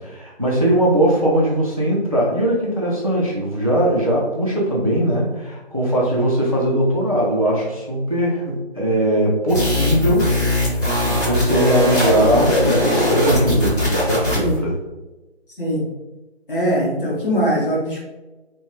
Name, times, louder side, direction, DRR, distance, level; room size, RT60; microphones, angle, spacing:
voice 1, 0.0-10.3 10.6-14.7, right 1 dB, 35° right, -3 dB, 0.5 m, -20 dB
sound 1, 9.5-14.6, left 1 dB, 15° left, 1.3 m, -20 dB
voice 2, 16.5-18.0, equal, 50° left, -5 dB, 1.4 m, -21 dB
3.5 x 2.2 x 3.0 m, 1.1 s
figure-of-eight pair, 160°, 34 cm